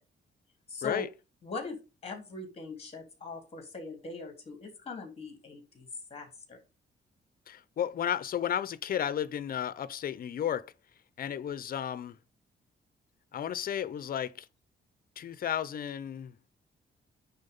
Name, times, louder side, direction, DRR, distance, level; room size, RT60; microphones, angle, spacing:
voice 1, 0.7-1.1 1.4-6.6, left 3 dB, 30° left, 3.1 m, -41 dB
voice 2, 7.5-10.7 11.2-12.2 13.3-14.5 15.2-16.4, left 9 dB, 50° left, 0.7 m, -33 dB
9.5 x 3.9 x 5.4 m
cardioid pair, 145°, 19 cm